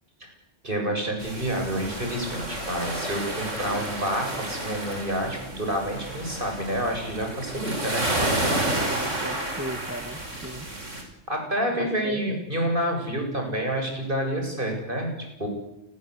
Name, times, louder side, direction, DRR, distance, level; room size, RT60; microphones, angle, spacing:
voice 1, 0.6-8.1 11.3-15.1 15.4-15.5, equal, 45° right, 2 dB, 8.3 m, -28 dB
sound 1, 1.2-11.0, right 1 dB, 85° right, 5.7 m, -31 dB
voice 2, 8.6-10.7 11.8-12.4, right 1 dB, 10° right, 9 dB, 1.4 m, -36 dB
29.0 x 22.0 x 8.5 m, 0.87 s
omnidirectional pair, 1.2 m